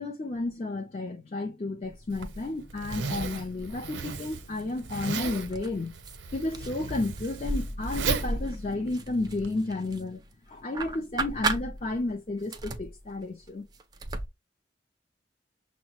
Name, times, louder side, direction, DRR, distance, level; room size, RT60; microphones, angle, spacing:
voice 1, 0.0-6.0 6.3-10.2 10.5-13.7, left 2 dB, 35° left, 0.5 m, -32 dB
sound 1, 1.8-2.6 2.9-4.1 4.5-6.2 6.5-10.3 10.7-12.1 12.4-14.3, right 2 dB, 20° right, 0.4 m, -35 dB
Zipper (clothing), 2.1-9.5, right 4 dB, 85° right, 0.6 m, -35 dB
6.3 x 2.1 x 2.9 m
head